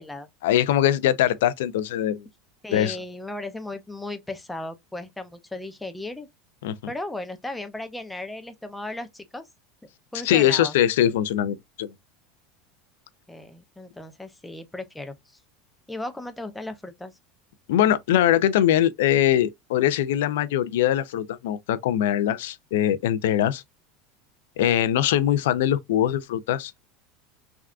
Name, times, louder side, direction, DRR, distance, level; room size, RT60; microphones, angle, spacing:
voice 1, 0.4-2.2 2.7-3.0 6.6-6.8 10.2-11.9 17.7-23.6 24.6-26.8, left 11 dB, 90° left, 0.3 m, -22 dB
voice 2, 2.6-6.3 6.9-9.5 10.1-10.7 13.3-15.4 15.9-17.1, left 2 dB, 5° left, 0.4 m, -36 dB
3.5 x 2.3 x 2.3 m
supercardioid pair, 160°, 0 cm